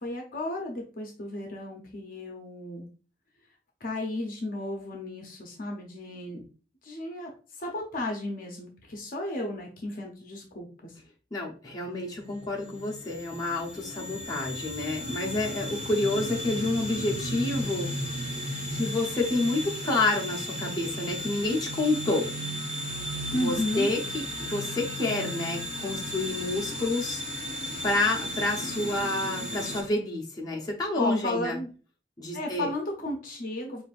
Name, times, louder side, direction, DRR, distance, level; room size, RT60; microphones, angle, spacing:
voice 1, 0.0-2.9 3.8-6.4 6.8-7.3 7.6-10.9 23.3-23.9 30.9-31.7 32.3-33.8, left 1 dB, 50° left, 1 dB, 0.7 m, -34 dB
voice 2, 11.3-17.9 18.3-18.4 18.7-22.3 23.3-27.2 27.8-31.6 32.2-32.7, left 2 dB, 20° left, -3 dB, 0.9 m, -29 dB
sound 1, 11.8-29.8, equal, 35° right, 1.7 m, -35 dB
5.1 x 2.6 x 2.4 m, 0.38 s
head